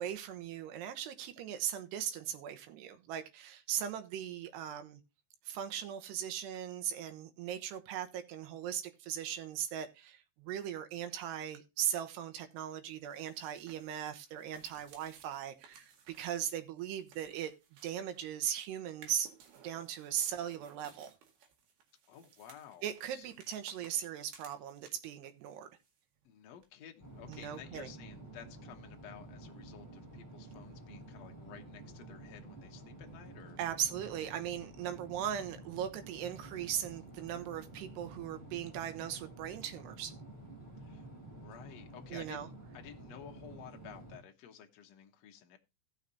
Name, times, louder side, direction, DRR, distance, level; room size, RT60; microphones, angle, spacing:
voice 1, 0.0-5.0 5.5-17.5 17.8-19.3 19.6-21.1 22.8-25.7 27.3-27.9 33.6-40.1 42.1-42.5, right 10 dB, 85° right, 3.1 m, -38 dB
sound 1, 12.9-18.4 18.9-25.2 25.4-26.3 26.6-26.7 27.3-27.4, right 6 dB, 70° right, 3.7 m, -60 dB
voice 2, 22.1-23.3 23.8-23.9 26.2-33.6 40.8-41.1 41.3-45.6, left 9 dB, 75° left, 1.5 m, -53 dB
sound 2, 27.0-44.2, right 2 dB, 5° right, 3.1 m, -51 dB
17.0 x 6.5 x 2.7 m
omnidirectional pair, 4.7 m